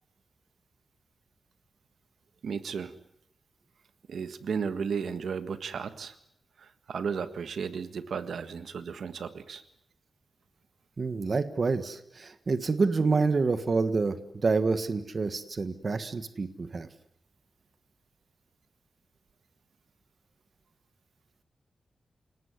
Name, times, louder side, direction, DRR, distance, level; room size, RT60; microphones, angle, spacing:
voice 1, 2.4-2.9 4.1-6.1 6.6-9.6, right 6 dB, 85° right, 11 dB, 1.6 m, -34 dB
voice 2, 11.0-16.9, right 4 dB, 40° right, 11 dB, 1.5 m, -28 dB
29.0 x 18.5 x 9.7 m, 0.77 s
wide cardioid pair, 160°, 0 cm